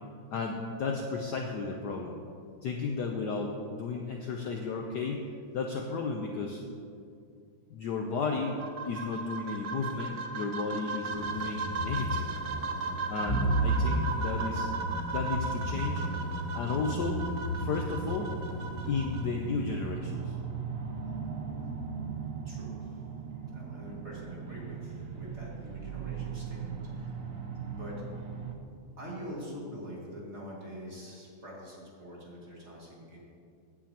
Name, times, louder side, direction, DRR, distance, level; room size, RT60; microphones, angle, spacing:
voice 1, 0.3-2.2 2.6-5.2 5.5-6.6 7.7-8.6 8.9-12.4 13.1-14.7 15.1-16.0 16.5-17.2 17.6-18.3 18.8-20.4, left 4 dB, 65° left, 1 dB, 1.1 m, -33 dB
sound 1, 8.2-19.2, right 4 dB, 85° right, 0.6 m, -36 dB
sound 2, 11.1-19.9, equal, 35° left, 0.6 m, -33 dB
sound 3, 16.7-28.5, right 6 dB, 60° right, 0.8 m, -39 dB
voice 2, 22.4-23.0 23.5-27.3 27.8-28.0 29.0-33.2, equal, 30° right, -4 dB, 2.3 m, -44 dB
16.0 x 9.3 x 2.9 m, 2.3 s
omnidirectional pair, 2.4 m